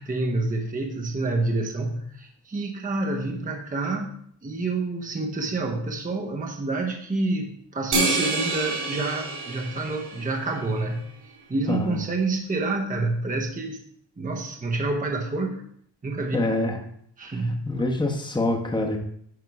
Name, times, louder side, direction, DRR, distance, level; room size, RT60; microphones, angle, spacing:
voice 1, 0.0-11.0 11.5-13.8 14.2-15.6 16.0-16.5 17.2-17.7, right 2 dB, 20° right, 2 dB, 0.9 m, -28 dB
sound 1, 7.9-10.6, right 3 dB, 60° right, 2.4 m, -28 dB
voice 2, 16.3-16.8 17.7-19.0, left 2 dB, 10° left, 2 dB, 1.0 m, -25 dB
9.4 x 3.6 x 4.7 m, 0.67 s
cardioid pair, 110°, 43 cm